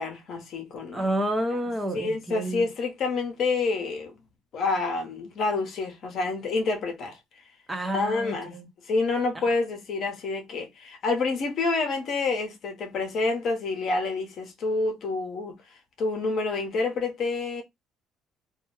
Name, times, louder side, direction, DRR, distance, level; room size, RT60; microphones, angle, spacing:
voice 1, 0.0-1.1 1.9-4.2 4.5-7.2 7.9-8.5 8.8-15.6 16.0-17.6, left 3 dB, 50° left, 0.7 m, -28 dB
voice 2, 0.9-2.6 7.7-8.7, right 1 dB, 10° right, 0.5 m, -29 dB
2.2 x 2.0 x 3.0 m
cardioid pair, 150°, 0 cm